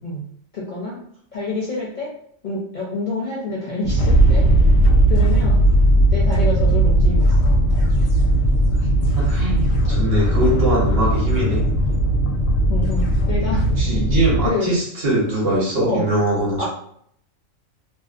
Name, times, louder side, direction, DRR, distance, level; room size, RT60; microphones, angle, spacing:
voice 1, 0.5-1.0 1.3-2.1 2.4-4.4 5.1-5.6 6.1-7.6 12.7-13.7 14.4-14.8 15.8-16.0 16.6-16.7, left 3 dB, 55° left, -5 dB, 0.5 m, -27 dB
sound 1, 3.8-14.5, right 1 dB, 80° left, 1.0 m, -17 dB
voice 2, 8.9-11.6 13.8-16.6, right 1 dB, 55° right, -4 dB, 0.9 m, -22 dB
2.6 x 2.0 x 2.4 m, 0.67 s
omnidirectional pair, 1.4 m